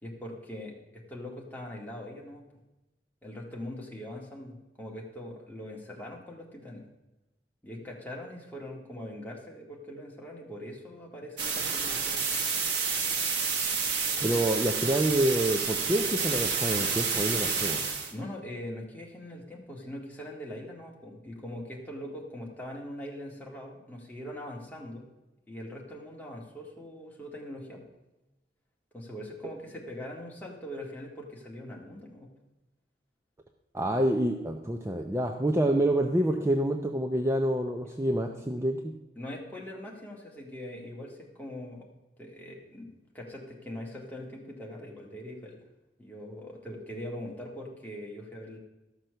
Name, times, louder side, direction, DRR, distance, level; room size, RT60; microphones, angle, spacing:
voice 1, 0.0-2.4 3.2-6.8 7.6-12.2 18.1-25.0 25.5-27.9 28.9-32.3 36.2-36.4 38.3-38.4 39.2-41.9 42.2-45.6 46.0-48.6, left 1 dB, 10° left, -2 dB, 1.9 m, -42 dB
sound 1, 11.4-18.1, right 5 dB, 75° right, 1.5 m, -29 dB
voice 2, 14.2-17.8 33.7-38.8, right 1 dB, 15° right, 3 dB, 0.6 m, -27 dB
13.0 x 6.0 x 6.6 m, 1.0 s
head